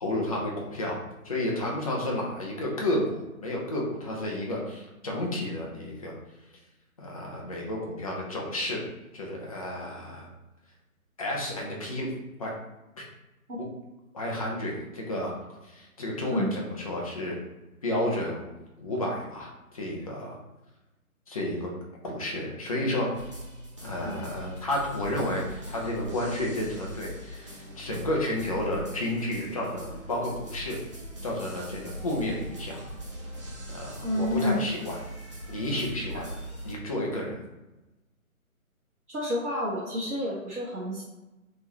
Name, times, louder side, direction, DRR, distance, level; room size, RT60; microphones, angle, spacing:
voice 1, 0.0-6.1 7.0-8.8 9.1-10.3 11.2-12.1 12.4-12.5 13.0-13.1 14.1-15.3 15.7-17.4 17.8-18.5 18.8-19.5 19.7-20.4 21.3-21.7 22.0-23.1 23.8-30.8 31.2-32.8 33.7-35.0 35.5-37.4, left 1 dB, 25° left, -2 dB, 0.6 m, -31 dB
sound 1, 23.1-36.7, right 1 dB, 20° right, 0.6 m, -41 dB
voice 2, 34.0-34.6 39.1-41.0, left 1 dB, 90° right, -6 dB, 1.3 m, -29 dB
3.8 x 3.5 x 2.9 m, 1.0 s
figure-of-eight pair, 150°, 43 cm